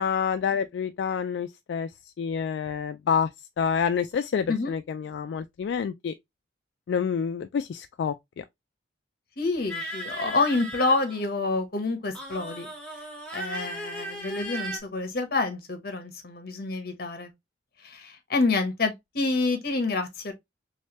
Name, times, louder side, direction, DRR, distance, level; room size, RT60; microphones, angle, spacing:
voice 1, 0.0-6.1 6.9-8.4 10.2-10.3, left 7 dB, 80° left, 0.3 m, -28 dB
voice 2, 9.4-12.7 13.3-17.3 17.8-20.3, left 3 dB, 60° left, 1.1 m, -28 dB
sound 1, 9.7-11.5 12.1-14.8, right 1 dB, 5° left, 1.0 m, -37 dB
3.2 x 3.2 x 3.0 m
head